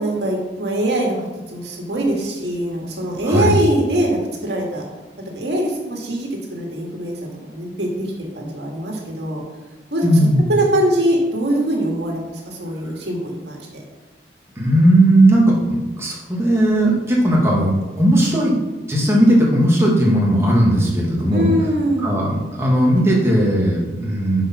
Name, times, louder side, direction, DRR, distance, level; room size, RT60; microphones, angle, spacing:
voice 1, 0.0-4.9 5.3-9.4 9.9-13.8 21.3-22.1, right 1 dB, 75° right, -1 dB, 2.0 m, -22 dB
voice 2, 10.0-10.4 14.6-18.5 18.9-21.5 22.0-24.4, right 1 dB, 15° right, -3 dB, 1.7 m, -16 dB
7.9 x 4.9 x 5.8 m, 1.1 s
head